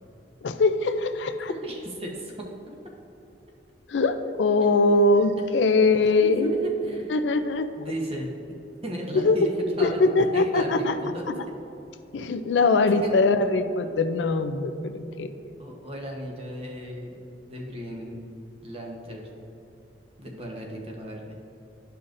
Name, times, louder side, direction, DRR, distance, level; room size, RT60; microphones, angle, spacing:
voice 1, 0.4-1.5 3.9-6.5 7.1-7.7 9.1-9.5 9.8-10.9 12.1-15.3, left 3 dB, 90° left, 9 dB, 0.4 m, -22 dB
voice 2, 1.5-2.5 6.2-7.1 7.8-8.3 8.8-9.5 9.8-10.0 10.3-10.9 11.1-11.2 13.0-13.1 15.6-17.2 17.5-18.2 18.6-19.3 20.2-21.2, equal, 35° right, -1 dB, 1.0 m, -35 dB
11.5 x 5.6 x 2.6 m, 2.8 s
head